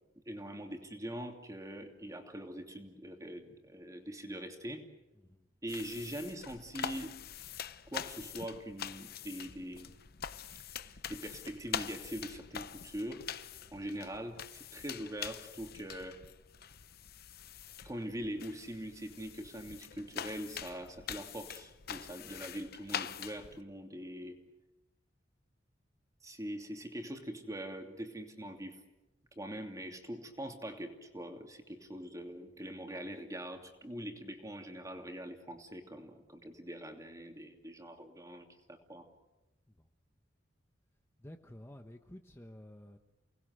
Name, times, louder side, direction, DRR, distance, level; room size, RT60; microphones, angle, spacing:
voice 1, 0.3-4.8 5.6-7.1 7.9-9.9 10.7-13.2 13.7-16.2 17.8-24.4 26.2-28.8 29.4-39.0, equal, 20° right, 4 dB, 2.8 m, -43 dB
voice 2, 5.1-5.5 39.8-39.9 41.2-43.0, left 1 dB, 15° left, 5 dB, 1.1 m, -52 dB
sound 1, 5.7-23.6, left 8 dB, 55° left, 0.9 m, -44 dB
29.0 x 20.0 x 8.0 m, 1.0 s
head